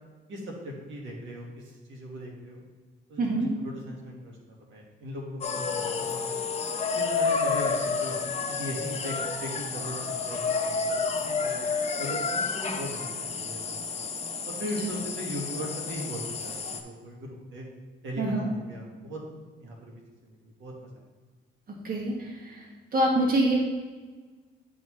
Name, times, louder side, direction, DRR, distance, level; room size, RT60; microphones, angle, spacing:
voice 1, 0.3-2.6 3.1-4.4 4.7-6.4 6.9-8.1 8.5-11.5 12.0-13.6 13.9-14.0 14.4-17.7 18.0-19.2 19.6-21.0, equal, 75° right, -1 dB, 1.6 m, -38 dB
voice 2, 3.2-3.5 18.2-18.5 21.8-22.6 22.9-23.6, right 1 dB, 45° right, -2 dB, 1.4 m, -25 dB
sound 1, 5.4-16.8, left 4 dB, 35° left, 0.7 m, -30 dB
10.0 x 3.9 x 3.1 m, 1.4 s
cardioid pair, 90°, 20 cm